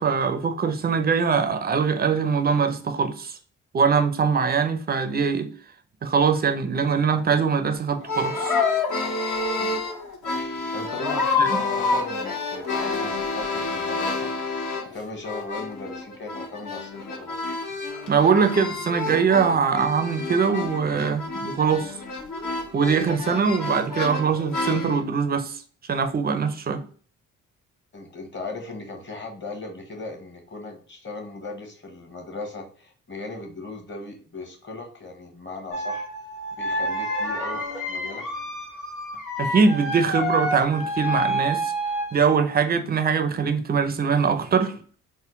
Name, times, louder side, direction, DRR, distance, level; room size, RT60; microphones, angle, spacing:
voice 1, 0.0-3.4 3.7-5.5 6.0-8.5 11.4-11.5 18.1-21.9 22.7-25.6 25.9-26.8 39.4-41.7 42.1-44.7, right 5 dB, 25° right, 0.5 m, -22 dB
sound 1, 8.0-15.0 15.2-25.0, left 3 dB, 55° left, 1.1 m, -28 dB
voice 2, 10.7-14.3 14.9-17.4 27.9-36.1 36.6-38.3, left 3 dB, 30° left, 1.2 m, -37 dB
sound 2, 35.7-42.2, equal, 90° left, 1.8 m, -28 dB
3.6 x 2.1 x 3.7 m
hypercardioid pair, 45°, 37 cm